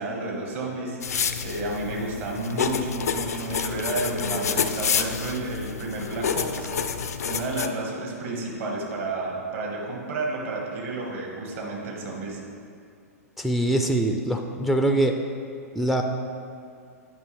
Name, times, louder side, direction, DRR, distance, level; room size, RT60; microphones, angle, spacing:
voice 1, 0.0-6.7 7.2-12.4, right 2 dB, 55° right, -1 dB, 1.7 m, -31 dB
sound 1, 1.0-7.7, left 6 dB, 70° left, 0.4 m, -28 dB
voice 2, 13.4-15.1 15.8-16.0, right 1 dB, ahead, 4 dB, 0.4 m, -23 dB
9.3 x 5.3 x 3.3 m, 2.3 s
figure-of-eight pair, 105°, 9 cm